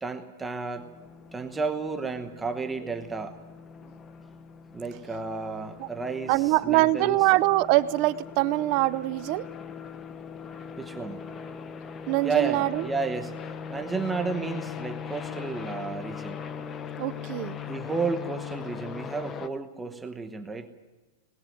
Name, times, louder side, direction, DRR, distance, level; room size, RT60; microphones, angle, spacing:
voice 1, 0.0-0.9 1.3-3.4 4.7-7.2 10.8-11.2 12.2-16.4 17.7-20.7, right 4 dB, 5° right, 6 dB, 1.0 m, -32 dB
sound 1, 0.8-19.5, left 7 dB, 15° left, 0.7 m, -40 dB
voice 2, 6.3-9.5 12.1-12.9 17.0-17.6, right 18 dB, 30° right, 16 dB, 0.6 m, -23 dB
20.0 x 15.0 x 9.3 m, 1.1 s
supercardioid pair, 175°, 0 cm